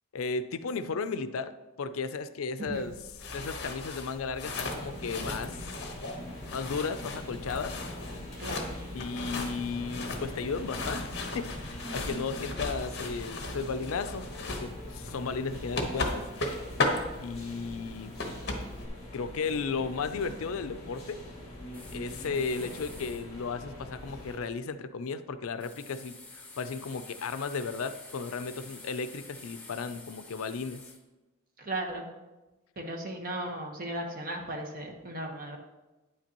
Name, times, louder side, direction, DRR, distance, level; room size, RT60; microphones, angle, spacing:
voice 1, 0.1-2.9 3.3-5.7 6.5-7.8 8.9-16.3 17.2-18.1 19.1-21.2 21.9-30.8, left 4 dB, 80° left, 12 dB, 0.4 m, -35 dB
voice 2, 2.6-2.9 8.4-8.8 31.6-32.1 32.8-35.6, right 1 dB, 40° right, 2 dB, 1.1 m, -36 dB
sound 1, 2.7-18.9, left 2 dB, 50° left, 1.1 m, -37 dB
sound 2, 4.4-24.4, left 1 dB, 30° left, 2.1 m, -43 dB
sound 3, 21.7-23.2 25.6-31.0, left 3 dB, 5° left, 0.8 m, -49 dB
9.5 x 8.6 x 2.9 m, 1.1 s
head